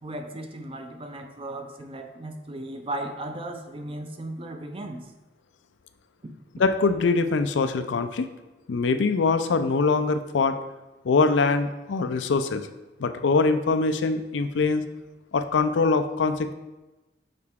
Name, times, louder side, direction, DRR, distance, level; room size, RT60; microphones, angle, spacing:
voice 1, 0.0-5.1, right 1 dB, 30° right, 6 dB, 0.6 m, -36 dB
voice 2, 6.6-8.2 8.7-10.6 11.0-12.7 13.0-14.8 15.3-16.5, left 4 dB, 85° left, 9 dB, 0.4 m, -23 dB
6.6 x 4.7 x 3.6 m, 1.1 s
head